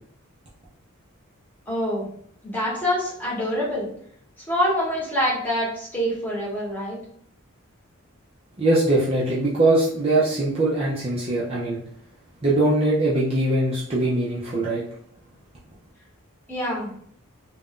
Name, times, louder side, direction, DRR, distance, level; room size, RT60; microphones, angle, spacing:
voice 1, 1.7-2.1 2.4-3.9 4.5-7.0 16.5-16.9, equal, 10° left, -7 dB, 0.9 m, -25 dB
voice 2, 8.6-11.8 12.4-14.8, right 2 dB, 25° right, -7 dB, 0.5 m, -21 dB
2.5 x 2.2 x 3.5 m, 0.63 s
head